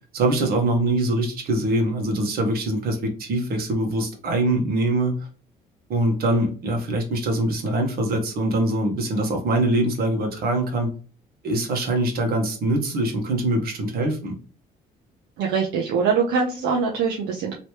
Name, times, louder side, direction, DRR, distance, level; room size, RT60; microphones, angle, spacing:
voice 1, 0.1-5.3 5.9-10.9 11.4-14.3, right 1 dB, 65° right, 3 dB, 1.3 m, -23 dB
voice 2, 15.4-17.5, right 5 dB, 80° right, 0 dB, 0.8 m, -23 dB
3.1 x 3.0 x 3.0 m, 0.38 s
cardioid pair, 110°, 17 cm